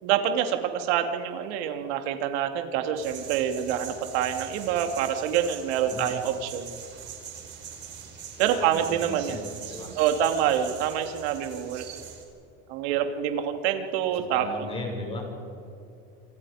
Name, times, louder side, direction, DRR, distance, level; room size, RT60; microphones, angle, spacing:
voice 1, 0.0-6.7 8.4-9.4 10.0-11.9 12.7-14.4, right 9 dB, 65° right, 6 dB, 2.7 m, -26 dB
sound 1, 3.0-12.2, right 8 dB, 30° right, 4.5 m, -42 dB
voice 2, 5.8-6.1 8.4-9.4 9.7-10.0 14.3-15.2, left 1 dB, 15° left, 1 dB, 6.1 m, -36 dB
28.0 x 27.0 x 5.1 m, 2.7 s
supercardioid pair, 160°, 34 cm